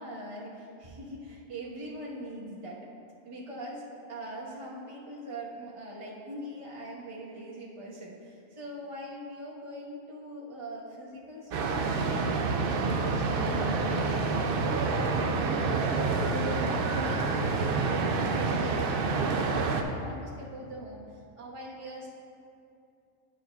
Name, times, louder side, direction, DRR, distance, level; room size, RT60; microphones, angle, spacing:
voice 1, 0.0-2.9 3.2-21.0 21.4-22.1, right 1 dB, 25° right, -5 dB, 1.1 m, -42 dB
sound 1, 11.5-19.8, right 4 dB, 70° right, 0.5 m, -28 dB
11.5 x 6.2 x 2.3 m, 2.4 s
omnidirectional pair, 1.5 m